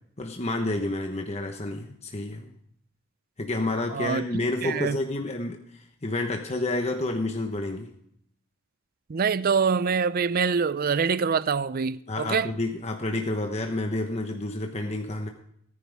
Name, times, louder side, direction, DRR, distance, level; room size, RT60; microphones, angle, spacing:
voice 1, 0.2-2.5 3.4-5.6 6.0-7.9 12.1-15.3, left 2 dB, 30° left, 1.1 m, -29 dB
voice 2, 3.9-4.3 4.6-5.0 9.1-12.5, right 5 dB, 45° right, 0.4 m, -25 dB
18.5 x 10.0 x 3.5 m
head